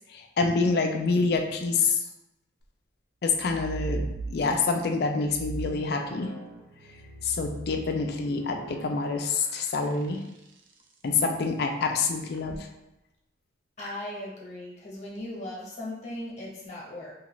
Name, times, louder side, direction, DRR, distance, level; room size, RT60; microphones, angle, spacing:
voice 1, 0.1-2.0 3.2-4.0 4.3-6.3 7.2-10.2 11.0-12.7, left 4 dB, 55° left, 4 dB, 0.4 m, -26 dB
sound 1, 3.3-4.8 5.2-10.7 12.3-12.6, right 2 dB, 75° right, 0.4 m, -39 dB
voice 2, 13.8-17.1, left 1 dB, 40° left, -4 dB, 0.8 m, -38 dB
2.8 x 2.4 x 3.0 m, 0.92 s
head